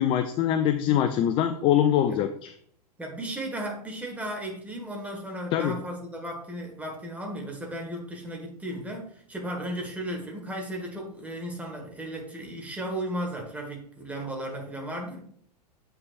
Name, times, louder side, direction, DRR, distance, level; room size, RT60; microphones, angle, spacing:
voice 1, 0.0-2.5 5.5-5.7, left 10 dB, 25° left, 9 dB, 0.4 m, -23 dB
voice 2, 3.0-15.2, right 1 dB, 5° right, 1 dB, 1.5 m, -35 dB
7.7 x 5.6 x 2.5 m, 0.63 s
figure-of-eight pair, 100°, 21 cm